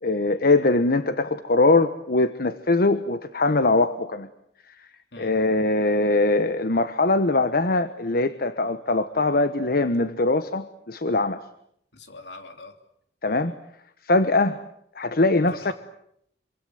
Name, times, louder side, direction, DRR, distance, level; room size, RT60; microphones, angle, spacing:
voice 1, 0.0-4.3 5.2-11.4 13.2-13.5 14.0-14.6 15.0-15.7, left 2 dB, 55° left, 11 dB, 1.1 m, -22 dB
voice 2, 11.9-12.7 15.5-15.7, left 3 dB, 75° left, 7 dB, 3.1 m, -42 dB
26.5 x 24.5 x 8.0 m, 0.73 s
head